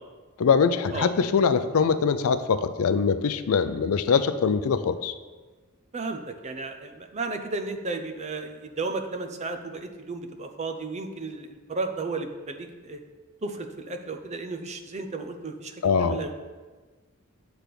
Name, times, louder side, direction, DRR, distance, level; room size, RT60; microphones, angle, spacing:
voice 1, 0.4-5.1 15.8-16.2, left 5 dB, 80° left, 12 dB, 0.4 m, -23 dB
voice 2, 5.9-13.0 13.4-16.3, right 3 dB, 30° right, 6 dB, 0.5 m, -34 dB
8.3 x 3.4 x 5.9 m, 1.3 s
head